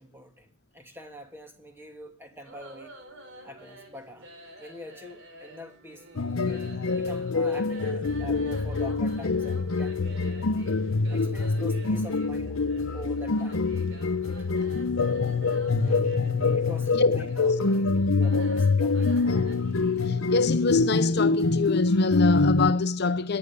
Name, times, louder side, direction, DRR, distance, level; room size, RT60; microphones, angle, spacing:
voice 1, 0.0-3.0 3.4-4.3 4.6-6.1 6.5-10.0 11.1-12.6 12.9-13.7 15.8-16.1 16.5-19.2, left 1 dB, 10° right, 2.9 m, -44 dB
sound 1, 2.4-20.1, right 1 dB, 65° right, 4.9 m, -50 dB
sound 2, 6.2-22.7, left 3 dB, 80° left, 0.9 m, -25 dB
voice 2, 20.1-23.4, left 3 dB, 50° left, 0.7 m, -25 dB
18.5 x 11.0 x 5.3 m
head